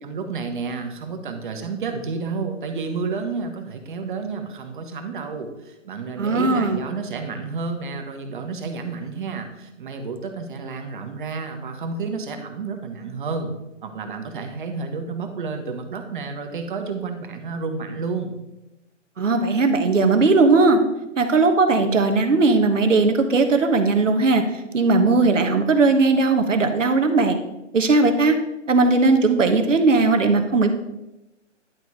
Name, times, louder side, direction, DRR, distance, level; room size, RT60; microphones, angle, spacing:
voice 1, 0.0-13.5 13.8-18.4, right 4 dB, 40° right, 6 dB, 1.2 m, -30 dB
voice 2, 6.2-6.8 19.2-20.8 21.2-24.4 24.7-27.4 27.7-28.3 28.7-30.7, right 3 dB, 80° right, 6 dB, 1.3 m, -18 dB
11.0 x 4.1 x 4.7 m, 0.96 s
hypercardioid pair, 150°, 37 cm